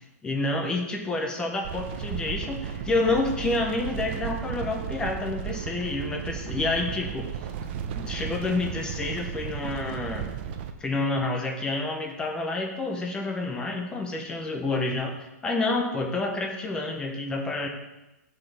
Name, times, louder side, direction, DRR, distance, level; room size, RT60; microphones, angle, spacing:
voice 1, 0.2-7.3 8.0-10.3 10.8-17.7, left 2 dB, 10° left, 3 dB, 0.7 m, -29 dB
sound 1, 1.6-10.7, right 8 dB, 40° right, 0.5 m, -34 dB
12.5 x 4.3 x 3.4 m, 1.0 s
hypercardioid pair, 160°, 9 cm